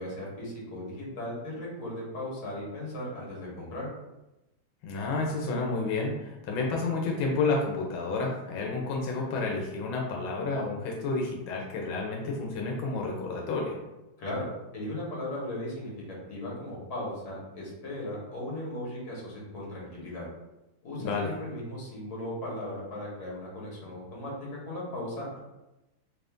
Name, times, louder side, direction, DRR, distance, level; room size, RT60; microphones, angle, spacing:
voice 1, 0.0-3.9 14.2-14.5 14.7-20.3 20.8-25.4, left 1 dB, 55° left, -4 dB, 1.7 m, -37 dB
voice 2, 4.8-13.8 21.0-21.3, left 3 dB, 90° left, -1 dB, 1.5 m, -30 dB
4.0 x 2.5 x 3.4 m, 0.99 s
omnidirectional pair, 2.1 m